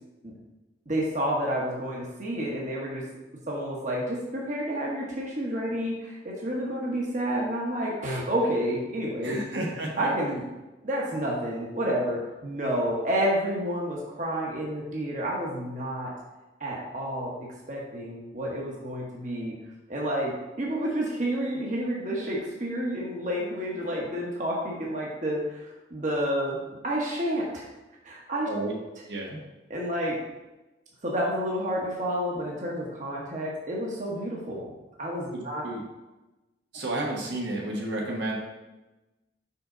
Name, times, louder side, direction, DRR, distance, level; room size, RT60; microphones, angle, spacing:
voice 1, 0.9-3.0 3.5-9.4 10.0-10.4 10.8-16.1 16.6-19.5 19.9-26.6 26.8-27.7 28.0-28.5 29.7-30.1 31.0-34.7 35.0-35.6, equal, 40° right, -3 dB, 1.2 m, -30 dB
voice 2, 9.2-10.1 28.4-28.7 29.0-29.4 35.3-35.8 36.7-38.4, right 1 dB, 75° right, -1 dB, 1.3 m, -31 dB
5.7 x 5.2 x 3.9 m, 1.1 s
head